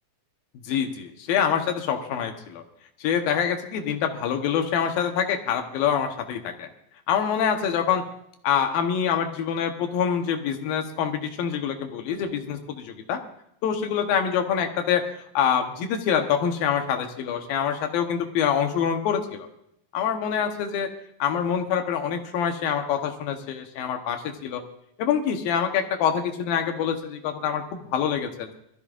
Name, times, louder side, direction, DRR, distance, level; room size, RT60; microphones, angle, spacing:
voice 1, 0.7-2.6 3.0-6.7 7.1-8.0 8.4-13.2 13.6-15.0 15.3-19.5 19.9-20.9 21.2-24.6 25.0-28.5, left 8 dB, 85° left, 5 dB, 3.0 m, -25 dB
23.0 x 14.0 x 2.5 m, 0.77 s
omnidirectional pair, 4.0 m